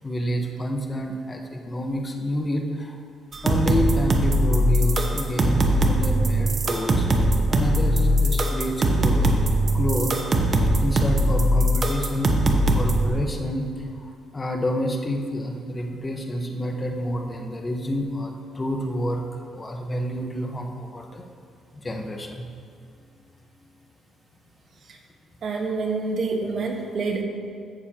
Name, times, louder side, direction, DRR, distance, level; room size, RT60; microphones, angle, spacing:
voice 1, 0.0-3.0 3.4-7.1 7.5-9.3 9.7-10.2 10.5-12.4 12.7-19.2 19.5-21.2 21.7-22.5, equal, 25° left, 2 dB, 1.2 m, -28 dB
sound 1, 3.3-13.1, right 1 dB, 40° right, 1.0 m, -21 dB
voice 2, 25.4-27.2, right 4 dB, 55° right, 1 dB, 1.4 m, -27 dB
15.0 x 6.8 x 3.0 m, 2.2 s
cardioid pair, 90°, 0 cm